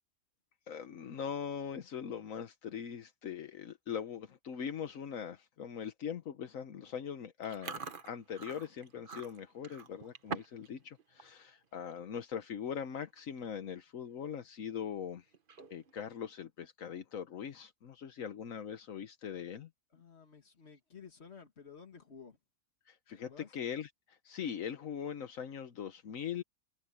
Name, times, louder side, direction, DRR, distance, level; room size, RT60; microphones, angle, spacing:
voice 1, 0.7-15.2 15.7-19.7 22.9-26.4, left 8 dB, 80° left, 1.4 m, -41 dB
Chewing mastication, 7.4-10.7 11.0-11.3 11.7-12.0 12.7-12.8 13.0-13.4 13.8-13.9 15.3-15.9, right 5 dB, 40° right, 1.3 m, -45 dB
voice 2, 19.9-22.4 23.1-23.5, left 6 dB, 50° left, 2.2 m, -53 dB
omnidirectional pair, 1.4 m